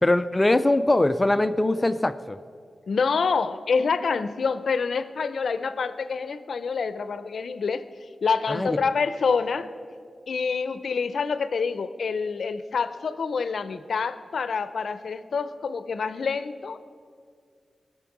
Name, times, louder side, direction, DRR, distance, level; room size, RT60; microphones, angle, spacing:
voice 1, 0.0-2.4 8.5-8.8, left 2 dB, 20° left, 13 dB, 0.4 m, -22 dB
voice 2, 2.9-7.8 8.2-9.7 10.3-16.8, left 5 dB, 80° left, 13 dB, 0.6 m, -27 dB
20.0 x 6.9 x 6.0 m, 2.2 s
wide cardioid pair, 115°, 0 cm